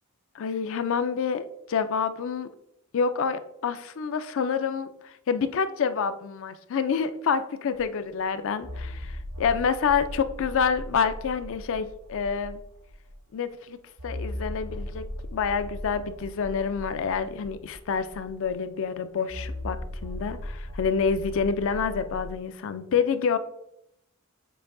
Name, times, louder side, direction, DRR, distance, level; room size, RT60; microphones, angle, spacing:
voice 1, 0.3-2.5 2.9-12.6 13.3-13.8 14.0-23.4, left 6 dB, 60° left, 12 dB, 0.4 m, -28 dB
sound 1, 7.7-7.8 8.6-13.2 14.0-18.6 19.3-22.3, left 1 dB, 80° right, 0.9 m, -38 dB
6.7 x 2.7 x 2.5 m, 0.79 s
head